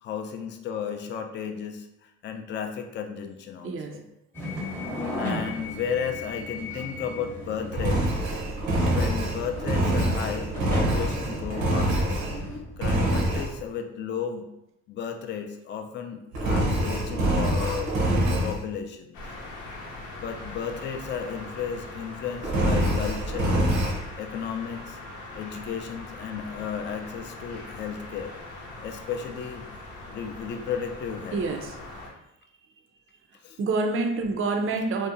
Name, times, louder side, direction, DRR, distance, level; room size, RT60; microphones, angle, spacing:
voice 1, 0.0-4.0 5.2-8.2 8.9-12.2 12.8-14.5 14.9-17.9 18.4-19.2 20.2-23.6 24.2-25.0 25.3-28.3 28.8-31.4 33.4-33.6, left 7 dB, 40° left, 5 dB, 0.4 m, -34 dB
voice 2, 3.6-4.0 31.3-31.8 33.6-35.1, right 3 dB, 45° right, 5 dB, 0.4 m, -27 dB
sound 1, 4.3-12.6, left 1 dB, 10° left, 0.7 m, -36 dB
Engine, 7.7-12.4 12.8-13.5 16.3-18.6 22.4-24.0, right 1 dB, 80° right, 0.7 m, -25 dB
sound 2, 19.1-32.1, left 2 dB, 80° left, 0.7 m, -41 dB
2.7 x 2.0 x 2.5 m, 0.84 s
supercardioid pair, 80°, 30 cm